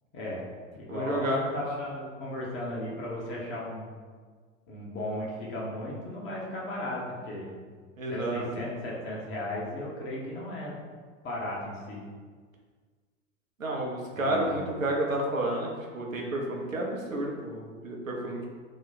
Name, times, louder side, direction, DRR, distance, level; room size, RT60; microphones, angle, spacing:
voice 1, 0.1-0.5 0.7-4.0 4.7-7.6 8.1-10.8 11.2-12.0 14.1-14.6, left 1 dB, 30° left, -4 dB, 0.9 m, -35 dB
voice 2, 0.9-1.5 8.0-8.5 13.6-18.5, right 1 dB, 85° right, -1 dB, 0.7 m, -30 dB
3.0 x 2.1 x 4.0 m, 1.5 s
figure-of-eight pair, 80°, 39 cm